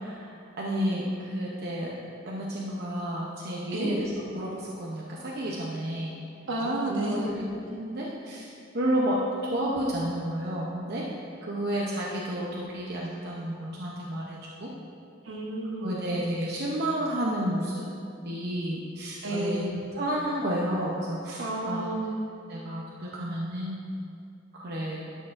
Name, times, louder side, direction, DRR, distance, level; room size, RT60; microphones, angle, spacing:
voice 1, 0.0-1.9 2.2-6.2 6.9-8.5 8.7-11.1 11.4-14.7 15.8-17.9 18.2-19.6 19.9-21.8 22.5-23.8 24.5-25.1, right 1 dB, 55° right, -4 dB, 0.8 m, -31 dB
voice 2, 3.7-4.0 6.5-7.3 15.2-15.9 19.2-19.7 21.4-22.2, right 1 dB, 75° right, -1 dB, 1.2 m, -30 dB
12.0 x 6.7 x 2.6 m, 2.5 s
head